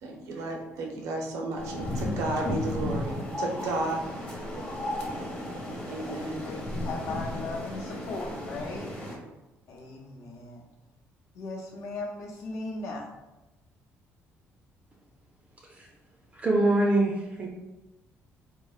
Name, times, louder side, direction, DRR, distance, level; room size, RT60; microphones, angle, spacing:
voice 1, 0.0-4.0 5.9-6.5, right 2 dB, 85° right, 1 dB, 0.6 m, -33 dB
sound 1, 1.6-9.2, left 1 dB, 20° left, 0.7 m, -34 dB
voice 2, 6.1-8.9 9.7-10.6 11.3-13.1, left 3 dB, 75° left, -1 dB, 0.7 m, -37 dB
voice 3, 16.3-17.5, right 2 dB, 25° right, -1 dB, 0.4 m, -24 dB
3.8 x 2.0 x 2.3 m, 1.0 s
cardioid pair, 135°, 5 cm